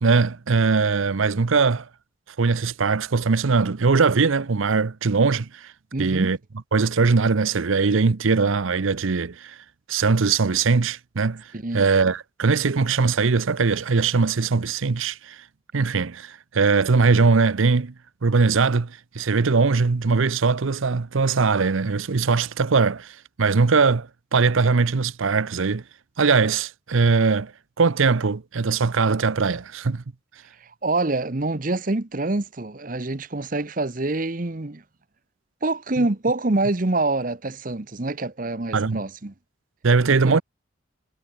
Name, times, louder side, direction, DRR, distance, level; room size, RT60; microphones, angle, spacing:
voice 1, 0.0-1.9 2.4-5.7 6.0-6.4 6.7-9.6 9.9-11.4 11.7-15.4 15.7-17.9 18.2-25.8 26.2-27.5 27.8-30.0 36.0-36.1 38.7-39.0 39.8-40.4, right 4 dB, 80° right, 0.7 m, -21 dB
voice 2, 5.9-6.3 11.5-11.9 30.6-34.8 35.6-39.3 40.1-40.4, right 2 dB, 40° right, 1.0 m, -26 dB
head